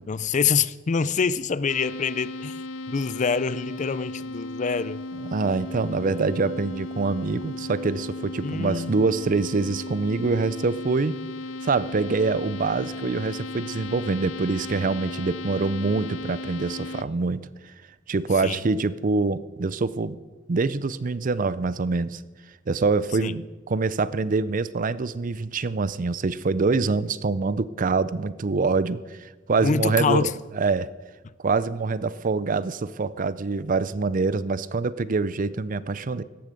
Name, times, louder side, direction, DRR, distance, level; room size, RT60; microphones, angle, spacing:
voice 1, 0.1-2.6 2.9-5.0 8.4-9.0 18.4-18.6 23.2-23.3 29.6-30.3, left 5 dB, 40° left, 0.4 m, -25 dB
sound 1, 1.7-17.0, left 2 dB, 80° left, 0.9 m, -36 dB
voice 2, 5.2-11.2 11.6-17.7 18.1-20.2 20.5-22.2 22.7-30.3 30.6-30.9 31.4-36.2, right 4 dB, 45° right, 0.5 m, -25 dB
17.5 x 13.5 x 5.2 m
head